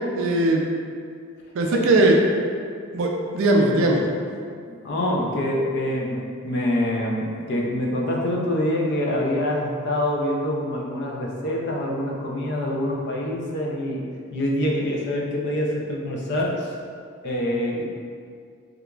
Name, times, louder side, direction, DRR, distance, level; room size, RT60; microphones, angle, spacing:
voice 1, 0.1-0.6 1.5-2.2 2.9-4.0, right 2 dB, 60° right, 0 dB, 0.3 m, -19 dB
voice 2, 4.7-14.0 14.3-16.7 17.2-17.8, left 1 dB, 50° left, -2 dB, 0.4 m, -25 dB
2.9 x 2.4 x 2.2 m, 2.1 s
head